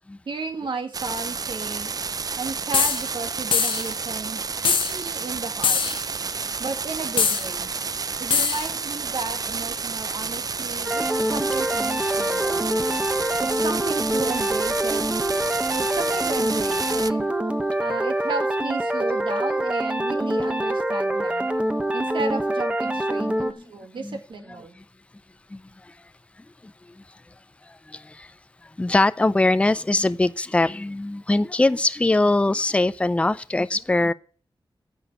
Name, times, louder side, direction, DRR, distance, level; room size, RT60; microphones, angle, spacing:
voice 1, 0.3-1.9 2.4-5.8 6.6-7.7 8.2-12.6 13.4-15.0 15.7-17.3 17.8-21.5 21.9-24.8, right 4 dB, 70° right, 2.0 m, -33 dB
sound 1, 0.9-17.1, right 5 dB, 45° right, 0.4 m, -30 dB
sound 2, 2.7-3.0 3.5-3.9 4.7-4.9 5.6-6.0 7.2-7.5 8.3-8.7, left 6 dB, 80° left, 0.8 m, -22 dB
sound 3, 10.8-23.5, right 1 dB, 15° right, 1.1 m, -25 dB
voice 2, 12.5-13.2 23.2-23.6 24.0-24.2 24.8-24.9 25.5-25.9 26.6-26.7 27.7-28.3 28.6-34.1, left 2 dB, 15° left, 0.4 m, -23 dB
10.0 x 7.0 x 8.9 m
wide cardioid pair, 135°, 9 cm